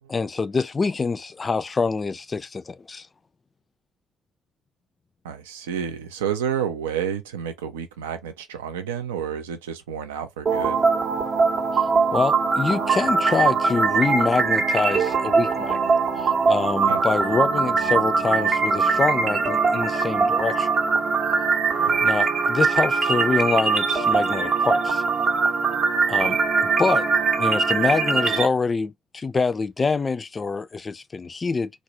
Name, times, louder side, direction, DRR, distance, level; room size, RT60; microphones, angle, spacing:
voice 1, 0.1-3.1 11.7-11.9 12.1-15.8 16.2-20.7 22.0-25.0 26.1-27.1 27.4-31.7, left 4 dB, 30° left, 0.3 m, -25 dB
voice 2, 5.2-10.8 16.9-17.0 21.7-22.0, right 8 dB, 75° right, 0.3 m, -30 dB
sound 1, 10.5-28.5, right 4 dB, 50° right, 0.7 m, -21 dB
2.3 x 2.0 x 2.7 m
figure-of-eight pair, 45°, 0 cm